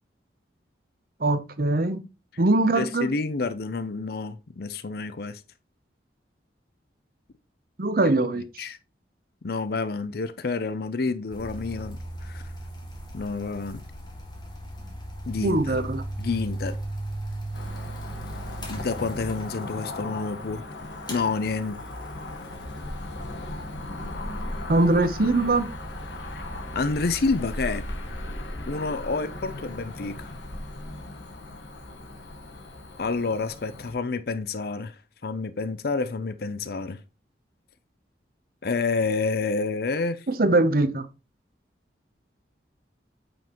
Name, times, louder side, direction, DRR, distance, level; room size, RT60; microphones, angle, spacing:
voice 1, 1.2-2.0 2.4-3.1 7.8-8.4 15.4-16.0 24.7-25.7 40.3-41.1, right 2 dB, 55° right, 0.8 m, -22 dB
voice 2, 2.8-5.4 8.6-8.8 9.4-12.4 13.1-13.8 15.3-15.8 16.2-16.8 18.7-20.6 21.1-21.8 26.3-26.4 26.7-27.8 28.7-30.3 33.0-35.0 35.2-37.0 38.6-40.2, left 4 dB, 55° left, 0.5 m, -29 dB
sound 1, 11.3-19.9 21.1-28.1, right 1 dB, 25° left, 1.9 m, -38 dB
Cricket / Motor vehicle (road), 17.5-33.9, left 2 dB, 75° left, 1.3 m, -37 dB
8.8 x 5.3 x 3.0 m
head